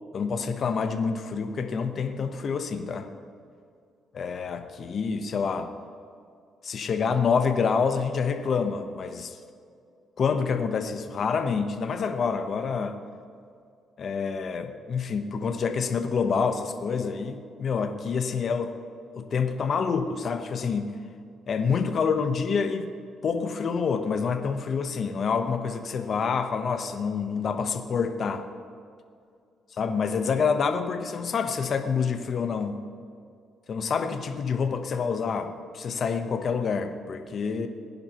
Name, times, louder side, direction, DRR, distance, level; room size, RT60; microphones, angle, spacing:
voice 1, 0.1-3.1 4.1-5.7 6.6-9.4 10.2-13.0 14.0-18.7 19.1-20.9 21.5-22.9 23.2-28.4 29.8-32.8 33.7-37.7, left 5 dB, 55° left, 7 dB, 1.0 m, -27 dB
19.5 x 11.0 x 3.0 m, 2.4 s
cardioid pair, 90°, 0 cm